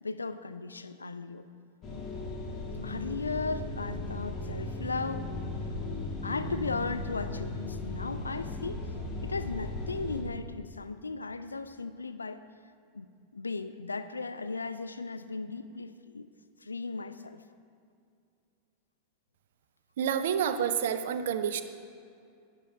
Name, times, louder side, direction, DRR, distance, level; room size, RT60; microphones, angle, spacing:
voice 1, 0.0-1.5 2.8-5.3 6.2-8.9 9.2-12.5 12.9-16.3 16.6-17.4, left 3 dB, 80° left, 11 dB, 0.4 m, -36 dB
sound 1, 1.8-10.2, left 2 dB, 30° left, 1.9 m, -37 dB
voice 2, 20.0-21.6, right 8 dB, 55° right, 10 dB, 0.6 m, -28 dB
11.5 x 7.5 x 4.5 m, 2.4 s
figure-of-eight pair, 90°, 0 cm